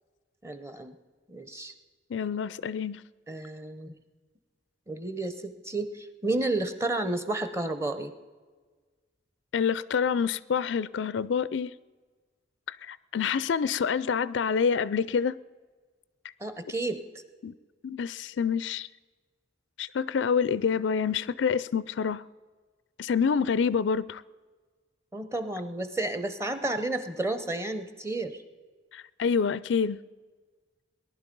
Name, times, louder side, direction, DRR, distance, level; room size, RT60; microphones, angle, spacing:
voice 1, 0.4-1.0 1.3-1.7 3.3-3.9 4.9-8.1 16.4-17.0 25.1-28.4, right 2 dB, 15° right, 11 dB, 0.8 m, -31 dB
voice 2, 2.1-3.0 9.5-11.7 12.7-15.4 17.4-17.5 17.8-18.9 19.8-22.2 23.0-24.2 28.9-30.0, left 6 dB, 70° left, 19 dB, 0.4 m, -27 dB
19.0 x 11.0 x 5.3 m, 1.4 s
head